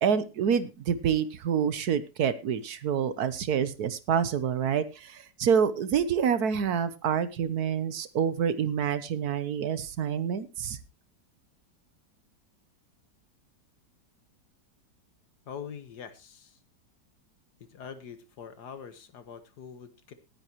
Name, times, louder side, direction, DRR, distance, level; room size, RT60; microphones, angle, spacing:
voice 1, 0.0-10.8, right 7 dB, 65° right, 14 dB, 1.3 m, -27 dB
voice 2, 15.5-16.6 17.6-20.1, left 7 dB, 70° left, 11 dB, 1.8 m, -44 dB
18.5 x 9.9 x 3.0 m, 0.27 s
omnidirectional pair, 1.9 m